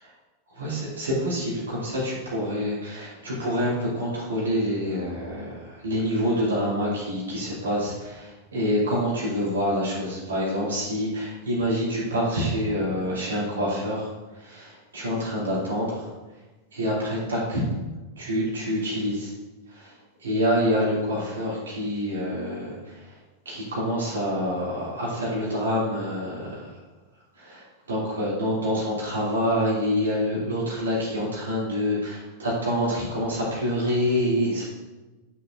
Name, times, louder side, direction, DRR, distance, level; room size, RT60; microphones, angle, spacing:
voice 1, 0.5-16.4 16.7-17.7 18.2-19.3 19.7-23.2 23.4-26.7 27.3-34.6, equal, 70° right, -7 dB, 2.9 m, -27 dB
11.0 x 6.6 x 2.7 m, 1.1 s
figure-of-eight pair, 90°, 0 cm